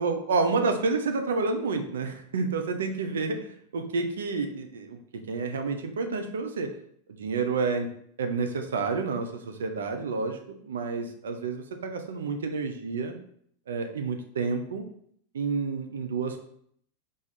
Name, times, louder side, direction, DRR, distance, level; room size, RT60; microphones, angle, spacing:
voice 1, 0.0-6.7 7.2-7.9 8.2-10.4 10.6-13.1 13.7-14.8 15.3-16.4, right 4 dB, 65° right, 6 dB, 0.6 m, -29 dB
3.5 x 3.4 x 4.1 m, 0.66 s
figure-of-eight pair, 90°, 0 cm